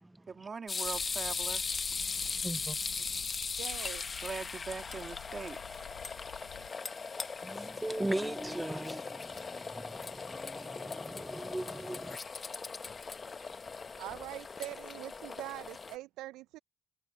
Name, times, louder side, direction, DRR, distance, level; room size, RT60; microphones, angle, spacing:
voice 1, 0.3-1.6 4.2-5.8, right 5 dB, 40° right, 2.5 m, -42 dB
sound 1, 0.7-16.0, left 4 dB, 35° left, 1.0 m, -39 dB
sound 2, 0.8-6.7, left 16 dB, 85° left, 0.6 m, -51 dB
voice 2, 2.0-3.1 7.4-12.2, right 1 dB, 10° right, 0.3 m, -39 dB
voice 3, 3.6-4.0 14.0-16.6, right 16 dB, 85° right, 0.4 m, -43 dB
supercardioid pair, 65°, 0 cm